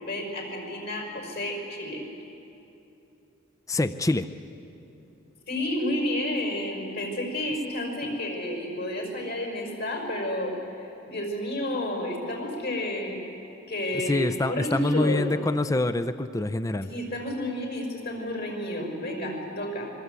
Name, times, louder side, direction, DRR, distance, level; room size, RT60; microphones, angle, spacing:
voice 1, 0.0-2.0 5.5-13.2 13.7-15.3 16.9-19.9, left 1 dB, 55° left, 2 dB, 5.5 m, -31 dB
voice 2, 3.7-4.3 13.9-16.9, left 2 dB, 15° left, 12 dB, 0.5 m, -26 dB
26.5 x 23.0 x 8.2 m, 3.0 s
head